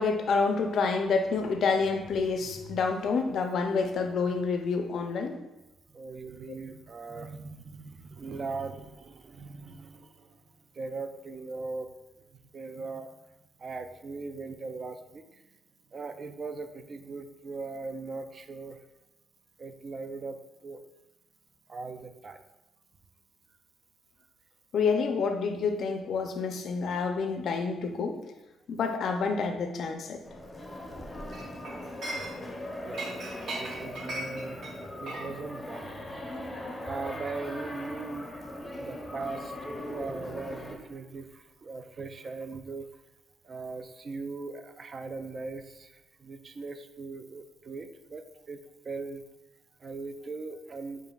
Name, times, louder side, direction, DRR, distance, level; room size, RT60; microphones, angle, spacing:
voice 1, 0.0-5.4 6.5-6.6 24.7-28.2 28.7-30.2, left 4 dB, 65° left, 6 dB, 0.4 m, -28 dB
voice 2, 5.9-10.3 10.8-11.9 12.5-13.1 13.6-15.2 15.9-18.8 19.6-20.4 20.6-20.8 21.7-22.4 32.8-34.6 34.9-35.9 36.8-38.5 38.8-42.9 43.5-45.9 46.2-48.6 48.8-49.2 49.8-51.0, right 3 dB, 40° right, 9 dB, 0.3 m, -39 dB
sound 1, 30.2-40.8, left 1 dB, 20° left, 0.6 m, -40 dB
Chink clink, 31.3-32.6 32.9-37.5 37.8-38.1, right 2 dB, 65° right, 0.8 m, -40 dB
6.8 x 2.5 x 2.3 m, 1.0 s
cardioid pair, 90°, 0 cm